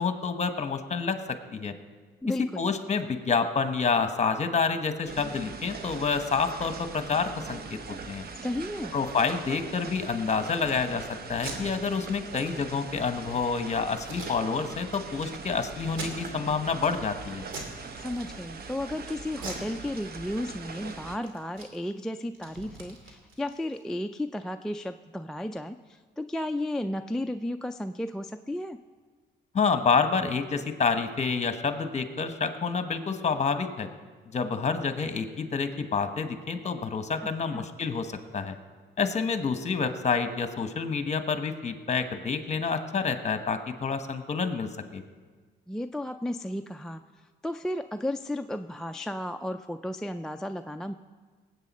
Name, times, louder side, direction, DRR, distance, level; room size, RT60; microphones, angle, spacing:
voice 1, 0.0-1.7 2.6-7.8 8.1-8.2 8.9-17.4 29.5-33.9 34.3-38.6 39.0-45.0, left 5 dB, 35° left, 8 dB, 1.1 m, -28 dB
voice 2, 2.2-2.7 8.4-8.9 18.0-28.8 37.2-37.7 45.7-50.9, left 1 dB, 5° left, 6 dB, 0.3 m, -34 dB
sound 1, 5.1-21.2, right 4 dB, 50° right, 1.0 m, -41 dB
Packing tape duct tape, 11.3-11.6 12.0-12.1 12.4-12.5 13.0-13.3 14.0-14.8 15.2-15.3 15.9-16.5 16.9-17.1 17.5-17.8 18.1-18.7 19.3-20.5 20.8-20.9 21.2-23.8, right 3 dB, 85° right, 2.3 m, -42 dB
19.5 x 8.4 x 4.2 m, 1.5 s
cardioid pair, 90°, 20 cm